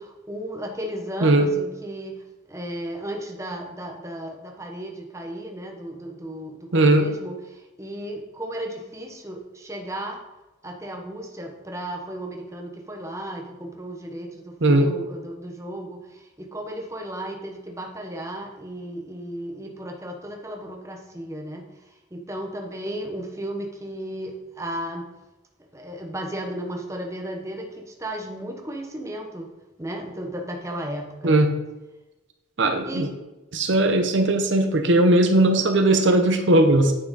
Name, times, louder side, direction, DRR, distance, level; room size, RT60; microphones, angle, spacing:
voice 1, 0.0-10.2 10.6-25.1 25.7-29.5 29.8-31.5 32.8-33.1, right 1 dB, 15° right, 2 dB, 1.0 m, -34 dB
voice 2, 6.7-7.1 14.6-14.9 31.2-31.5 32.6-33.1 33.5-36.9, right 1 dB, 70° right, 6 dB, 0.9 m, -18 dB
8.8 x 6.0 x 4.1 m, 1.1 s
head